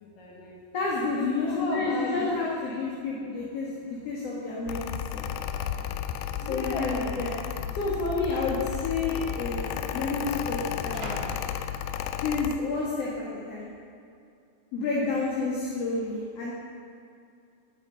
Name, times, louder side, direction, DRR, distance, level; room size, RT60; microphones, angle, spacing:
voice 1, 0.0-0.6 1.4-2.2 2.7-2.8 5.5-7.2, left 3 dB, 70° left, -3 dB, 2.9 m, -37 dB
voice 2, 0.7-4.8 5.1-5.3 6.5-7.4 7.7-11.3 12.2-13.7 14.7-16.5, left 3 dB, 50° left, -5 dB, 2.4 m, -30 dB
sound 1, 3.5-3.6 3.9-4.3 5.0-5.1 5.9-6.4 6.6-6.8 7.6-7.8 8.8-8.9 9.1-12.3 12.8-13.2, right 1 dB, 40° right, 1.7 m, -46 dB
Mechanical fan, 4.7-12.6, left 9 dB, 90° left, 2.5 m, -33 dB
15.5 x 8.9 x 5.2 m, 2.4 s
omnidirectional pair, 4.3 m